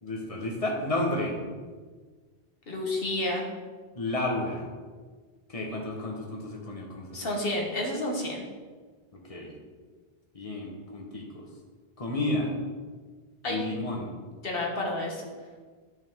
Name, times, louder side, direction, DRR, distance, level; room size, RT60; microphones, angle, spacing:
voice 1, 0.0-1.4 3.9-4.7 5.5-7.3 9.1-9.5 10.3-11.5 12.0-12.5 13.5-14.1, left 2 dB, 35° left, 0 dB, 1.4 m, -31 dB
voice 2, 2.7-3.4 7.1-8.4 13.4-13.6 14.4-15.2, left 1 dB, 65° left, 0 dB, 1.6 m, -30 dB
9.5 x 5.7 x 3.7 m, 1.5 s
omnidirectional pair, 1.0 m